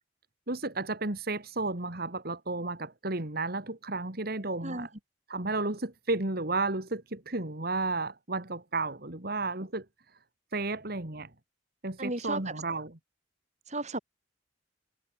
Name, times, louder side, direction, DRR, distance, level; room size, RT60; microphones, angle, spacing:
voice 1, 0.5-4.9 5.3-9.8 10.5-11.3 11.8-13.0, right 3 dB, 55° right, 2.5 m, -33 dB
voice 2, 12.0-12.4 13.7-14.0, right 2 dB, 40° right, 7.8 m, -33 dB
head